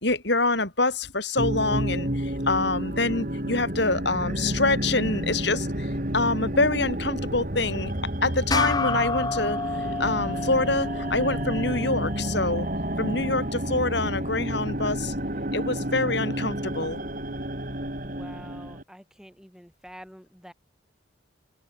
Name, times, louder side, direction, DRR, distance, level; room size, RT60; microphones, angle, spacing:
voice 1, 0.0-7.9 8.2-9.6 10.0-12.7 13.0-15.1 15.5-17.0, left 2 dB, 60° left, 4.5 m, -26 dB
sound 1, 1.4-18.8, right 1 dB, 45° right, 4.0 m, -30 dB
sound 2, 8.5-13.3, left 3 dB, 20° left, 0.7 m, -31 dB
voice 2, 18.0-20.5, equal, 5° right, 7.1 m, -47 dB
head